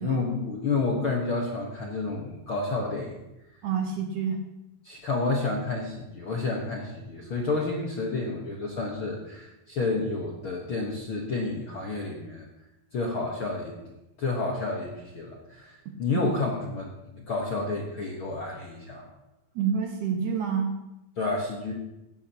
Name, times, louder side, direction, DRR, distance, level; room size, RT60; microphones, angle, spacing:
voice 1, 0.0-3.1 4.8-12.4 12.9-13.8 14.2-19.1 21.2-21.7, left 3 dB, 55° left, -2 dB, 1.5 m, -30 dB
voice 2, 3.6-4.4 19.6-20.7, right 6 dB, 65° right, 3 dB, 2.3 m, -28 dB
17.0 x 12.5 x 3.0 m, 0.94 s
omnidirectional pair, 4.3 m